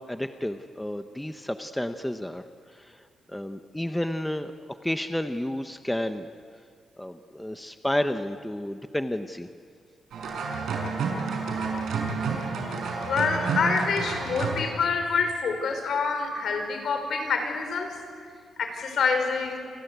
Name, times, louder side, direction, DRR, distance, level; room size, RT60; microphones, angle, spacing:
voice 1, 0.0-2.4 2.7-3.0 3.3-4.5 4.8-6.3 7.0-9.5, left 1 dB, 5° left, 8 dB, 0.9 m, -31 dB
sound 1, 10.1-14.7, right 4 dB, 85° right, 5.7 m, -30 dB
voice 2, 13.1-17.9 18.6-19.6, left 5 dB, 65° left, 5 dB, 4.9 m, -26 dB
29.0 x 25.0 x 8.2 m, 2.1 s
wide cardioid pair, 150°, 0 cm